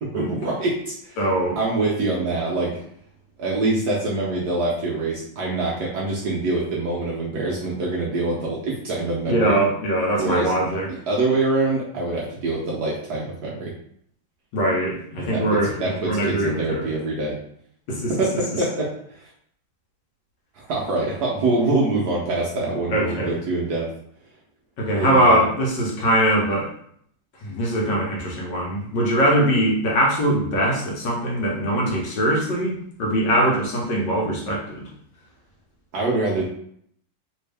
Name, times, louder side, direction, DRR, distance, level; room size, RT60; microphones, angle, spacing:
voice 1, 0.0-1.2 1.6-2.7 3.4-9.6 10.2-10.6 10.9-13.7 15.2-15.4 15.8-17.4 18.1-19.3 20.5-23.9 24.9-25.4 35.9-36.5, right 2 dB, 65° right, -4 dB, 1.0 m, -25 dB
voice 2, 1.2-1.6 9.3-10.9 14.5-16.9 17.9-18.1 22.9-23.3 24.8-26.7 27.4-34.9, right 1 dB, 65° left, -2 dB, 1.4 m, -22 dB
3.4 x 2.7 x 3.3 m, 0.67 s
omnidirectional pair, 2.2 m